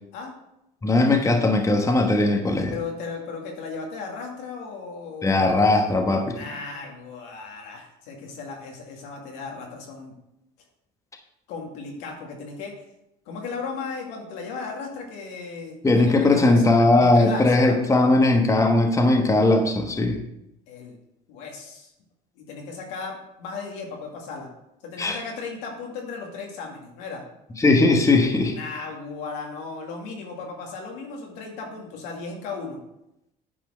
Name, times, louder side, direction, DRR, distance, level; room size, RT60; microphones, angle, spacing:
voice 1, 0.8-2.8 5.2-6.4 15.8-20.2 25.0-25.2 27.6-28.5, left 2 dB, 15° left, 3 dB, 1.2 m, -19 dB
voice 2, 2.7-5.5 6.4-10.1 11.5-12.7 13.3-16.6 17.0-17.8 20.7-21.0 21.3-21.9 22.4-24.5 24.8-27.2 28.4-32.8, left 4 dB, 80° left, 0 dB, 2.2 m, -36 dB
9.7 x 4.3 x 5.1 m, 0.85 s
supercardioid pair, 95°, 18 cm